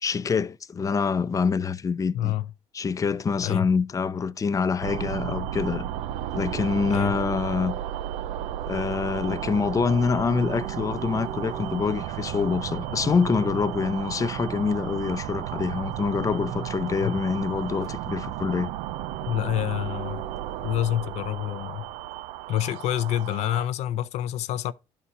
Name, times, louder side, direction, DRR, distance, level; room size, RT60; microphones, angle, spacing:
voice 1, 0.0-2.3 2.7-5.8 6.3-7.7 8.7-18.7, left 5 dB, 30° left, 0.6 m, -26 dB
voice 2, 2.1-2.5 3.4-3.7 6.8-7.2 17.0-17.1 19.3-20.2 20.6-21.9 22.5-24.7, left 13 dB, 70° left, 0.5 m, -27 dB
sound 1, 4.8-23.7, right 12 dB, 85° right, 0.6 m, -33 dB
sound 2, 10.6-20.9, right 4 dB, 30° right, 1.5 m, -50 dB
11.0 x 4.3 x 4.8 m
supercardioid pair, 80°, 12 cm